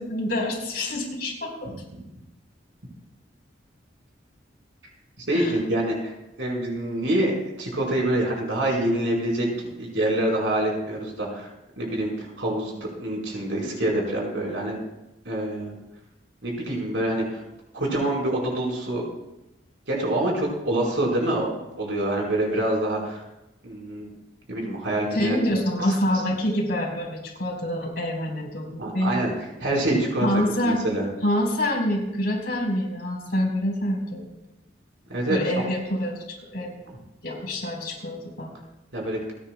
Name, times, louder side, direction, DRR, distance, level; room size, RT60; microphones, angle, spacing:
voice 1, 0.0-1.7 5.3-5.6 25.1-29.3 30.2-30.8 31.2-34.3 35.3-36.7 37.2-38.5, left 1 dB, 55° left, -1 dB, 4.7 m, -26 dB
voice 2, 1.6-2.2 5.2-6.1 6.4-11.5 11.8-14.8 15.2-15.7 16.4-17.4 17.7-19.0 19.9-23.2 23.6-24.1 24.5-25.4 25.9-26.0 28.8-29.3 29.6-31.0 35.1-35.6 36.9-37.0 38.9-39.2, right 1 dB, 80° right, -2 dB, 4.9 m, -26 dB
29.5 x 9.9 x 2.4 m, 0.93 s
head